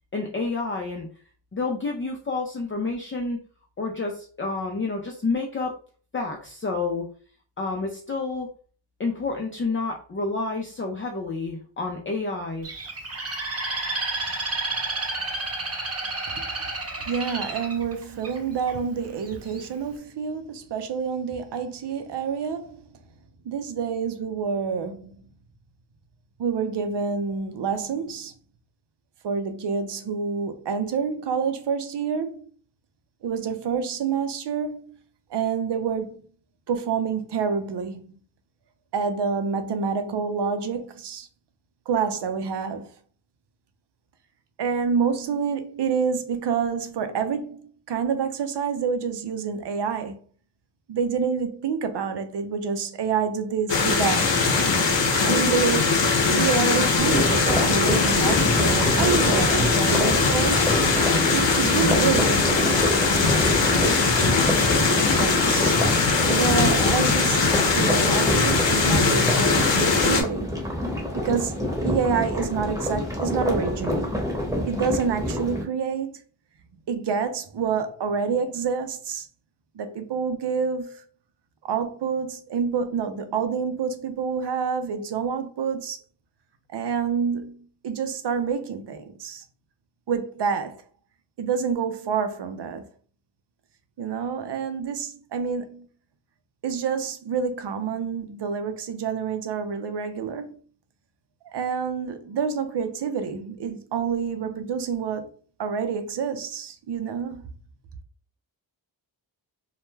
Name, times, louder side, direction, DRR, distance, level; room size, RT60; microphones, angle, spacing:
voice 1, 0.1-1.1 1.5-3.4 3.8-5.8 6.1-7.1 7.6-8.5 9.0-12.7, left 3 dB, 25° left, 0.5 m, -29 dB
Bird, 12.6-18.7 19.3-19.7, right 2 dB, 30° right, 0.8 m, -30 dB
voice 2, 17.1-22.8 23.4-25.1 26.4-28.3 29.2-32.4 33.2-34.8 35.3-36.2 36.7-38.0 38.9-41.3 41.9-42.9 44.6-50.2 50.9-54.4 55.2-55.9 56.3-60.7 61.3-62.7 65.0-65.7 66.0-70.5 71.1-74.0 74.7-76.2 76.9-79.3 79.7-81.0 81.6-86.0 86.7-89.4 90.1-90.8 91.4-92.9 94.0-95.9 96.6-100.5 101.5-105.3 105.6-107.4, right 6 dB, 60° right, 0.6 m, -27 dB
sound 1, 53.7-70.2, left 4 dB, 60° left, 0.8 m, -21 dB
sound 2, 57.0-75.6, left 1 dB, 5° right, 1.1 m, -27 dB
2.3 x 2.1 x 3.1 m
cardioid pair, 45°, 48 cm